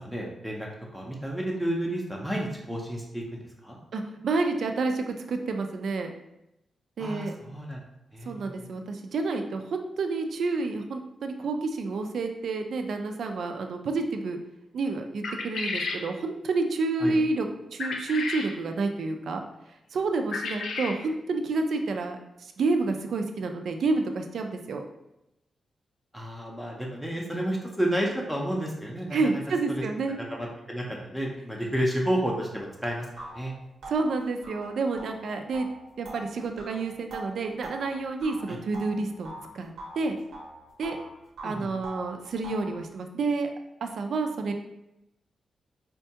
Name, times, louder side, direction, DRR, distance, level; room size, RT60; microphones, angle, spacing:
voice 1, 0.0-3.8 7.0-7.8 8.1-8.7 17.0-17.1 26.1-29.4 29.7-29.8 30.3-33.1 33.3-33.5 38.5-38.6 41.4-41.7, equal, ahead, -2 dB, 0.5 m, -31 dB
voice 2, 3.9-6.1 7.0-7.3 8.3-14.4 14.7-19.4 19.9-24.8 29.1-30.2 33.9-35.7 36.0-40.2 40.8-41.0 41.4-43.5 43.8-44.5, right 3 dB, 65° right, 5 dB, 0.4 m, -29 dB
sound 1, 15.2-16.0 17.8-18.5 20.3-21.0, left 3 dB, 85° left, 0.4 m, -32 dB
sound 2, 32.6-32.7 33.2-39.5 39.8-41.1 41.4-42.8, right 2 dB, 90° right, 0.9 m, -43 dB
4.4 x 2.2 x 2.7 m, 0.88 s
wide cardioid pair, 140°, 0 cm